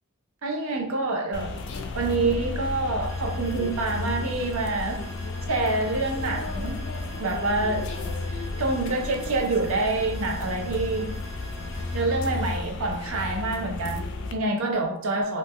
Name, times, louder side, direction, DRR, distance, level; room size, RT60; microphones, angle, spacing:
voice 1, 0.4-1.5 1.9-5.0 5.5-6.8 7.2-7.9 8.3-11.1 11.9-15.4, right 2 dB, 90° right, 3 dB, 0.6 m, -27 dB
sound 1, 1.3-14.3, left 2 dB, 60° left, 0.4 m, -33 dB
sound 2, 3.0-12.0, right 6 dB, 45° right, 0.7 m, -48 dB
2.6 x 2.1 x 3.4 m, 0.71 s
head